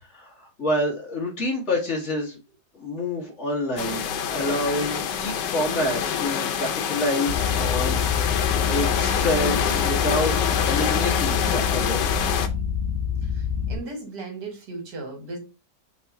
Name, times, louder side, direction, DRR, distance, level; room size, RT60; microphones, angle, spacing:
voice 1, 0.1-2.4 2.7-8.2 8.7-12.1, left 1 dB, 45° left, -1 dB, 1.4 m, -28 dB
sound 1, 3.8-12.5, left 8 dB, 85° left, 1.3 m, -26 dB
sound 2, 7.3-13.8, left 7 dB, 20° right, 1.2 m, -27 dB
voice 2, 13.2-15.4, right 2 dB, 70° right, 3 dB, 2.0 m, -36 dB
3.6 x 3.1 x 4.5 m, 0.29 s
omnidirectional pair, 1.8 m